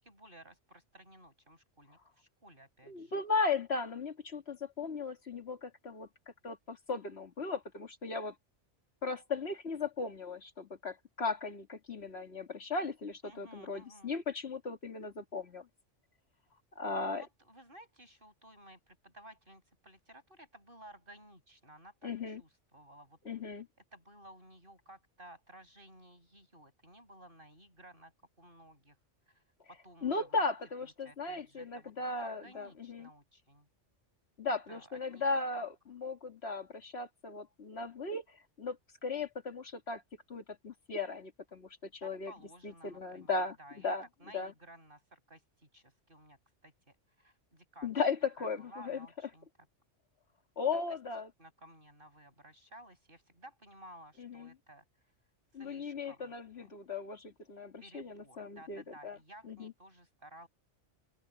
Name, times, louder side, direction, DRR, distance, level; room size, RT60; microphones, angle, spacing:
voice 1, 0.0-3.2 13.2-14.1 17.1-23.2 23.9-28.1 28.4-29.0 29.3-30.4 30.8-33.7 34.7-35.7 42.0-43.9 44.2-48.0 48.4-49.5 50.7-50.8 51.4-54.9 55.5-56.7 57.8-60.5, right 1 dB, 45° right, 8.1 m, -56 dB
voice 2, 2.9-6.1 6.4-8.4 9.0-15.7 16.8-17.2 22.0-22.4 23.3-23.7 30.0-33.1 34.4-40.0 40.3-42.3 42.6-44.1 44.3-44.5 47.8-49.1 50.6-51.3 54.2-54.5 55.5-59.2 59.4-59.7, left 4 dB, 60° left, 2.3 m, -37 dB
open air
omnidirectional pair, 1.2 m